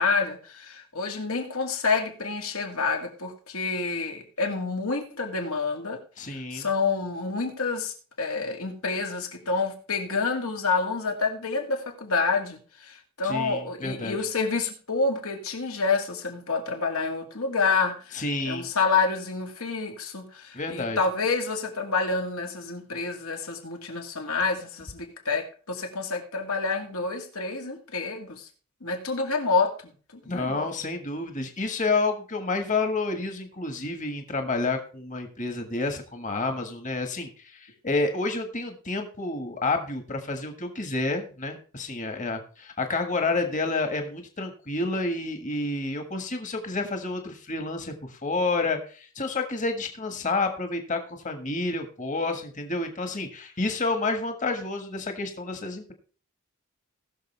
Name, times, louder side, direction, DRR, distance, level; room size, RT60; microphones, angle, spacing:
voice 1, 0.0-6.0 6.3-28.5 28.8-29.9 30.3-30.7, left 4 dB, 80° left, 3 dB, 2.3 m, -28 dB
voice 2, 6.2-6.7 13.2-14.2 18.1-18.7 20.5-21.0 30.2-55.9, left 3 dB, 35° left, 5 dB, 1.6 m, -29 dB
19.5 x 6.6 x 3.4 m, 0.39 s
head